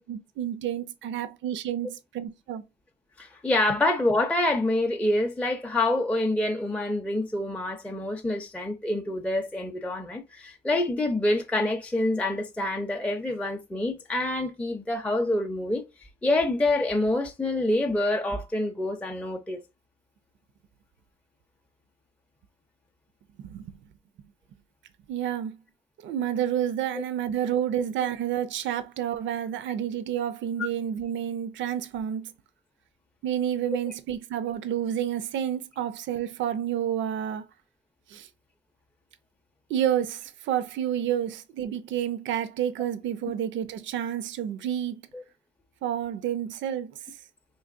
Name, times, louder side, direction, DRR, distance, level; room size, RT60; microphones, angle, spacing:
voice 1, 0.0-2.6 23.4-23.7 25.1-25.6 26.0-32.3 33.2-37.4 38.1-38.3 39.7-45.0 45.8-47.0, right 10 dB, 70° right, 0.5 m, -29 dB
voice 2, 3.2-15.8 16.2-19.6 27.0-27.1 45.1-45.2, left 2 dB, 5° left, 0.4 m, -26 dB
3.8 x 2.9 x 2.4 m
cardioid pair, 90°, 20 cm